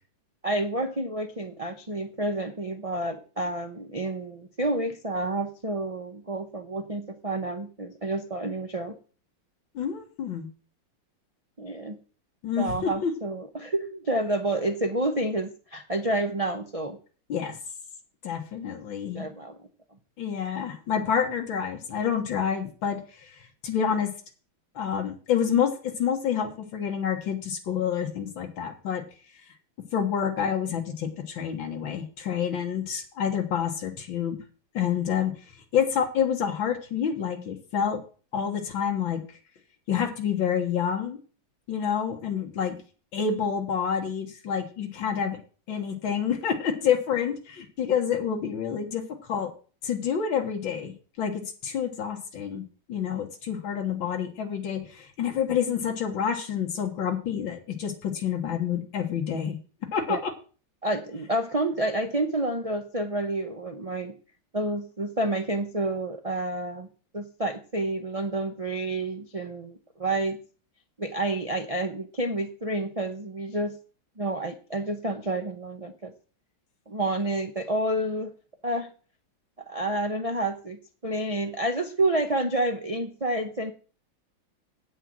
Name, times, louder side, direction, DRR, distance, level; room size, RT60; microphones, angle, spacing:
voice 1, 0.4-9.0 11.6-12.0 12.6-17.0 19.1-19.6 60.1-60.2 60.8-64.2 64.5-66.9 67.1-70.4 71.0-73.7 74.2-76.1 76.9-78.3 78.6-78.9 79.7-83.7, right 2 dB, 40° right, 5 dB, 0.5 m, -29 dB
voice 2, 9.7-10.5 12.4-13.1 17.3-17.6 18.2-19.3 20.2-24.1 24.8-29.0 29.9-34.4 34.7-35.3 35.7-38.0 38.3-39.2 39.9-41.2 41.7-42.8 43.1-45.4 45.7-49.5 49.8-52.6 52.9-59.6 59.9-60.3, left 8 dB, 85° left, 3 dB, 2.2 m, -28 dB
8.6 x 5.7 x 7.6 m, 0.38 s
omnidirectional pair, 2.1 m